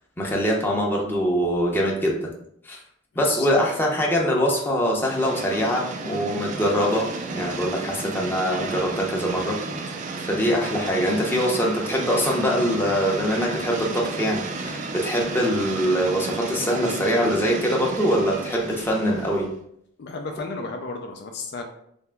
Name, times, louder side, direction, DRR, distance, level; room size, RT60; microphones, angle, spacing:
voice 1, 0.2-2.3 2.6-2.8 3.2-9.6 9.9-10.0 10.3-19.5, equal, 10° left, -2 dB, 0.6 m, -23 dB
voice 2, 3.3-3.8 20.0-21.6, left 3 dB, 50° left, 4 dB, 0.4 m, -34 dB
sound 1, 5.0-19.5, right 3 dB, 35° right, 0.3 m, -33 dB
3.4 x 2.9 x 3.4 m, 0.72 s
head